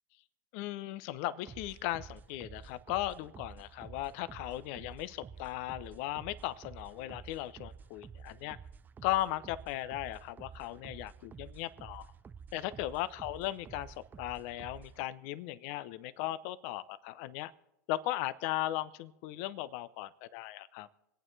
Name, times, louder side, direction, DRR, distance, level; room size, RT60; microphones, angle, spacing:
voice 1, 0.5-8.6 9.0-12.1 12.5-17.5 17.9-20.9, left 14 dB, 60° left, 16 dB, 0.7 m, -37 dB
sound 1, 1.5-15.0, right 6 dB, 20° right, 0.4 m, -51 dB
25.0 x 9.0 x 3.3 m, 0.87 s
hypercardioid pair, 105°, 9 cm